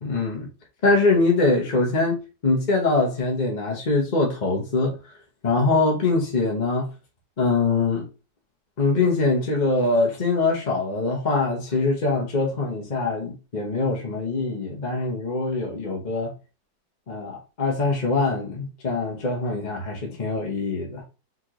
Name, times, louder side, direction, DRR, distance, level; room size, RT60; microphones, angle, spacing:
voice 1, 0.0-0.5 0.8-5.0 5.4-6.9 7.4-8.1 8.8-16.3 17.1-21.0, left 3 dB, 35° left, 0.8 m, -23 dB
4.3 x 3.8 x 3.0 m
omnidirectional pair, 2.1 m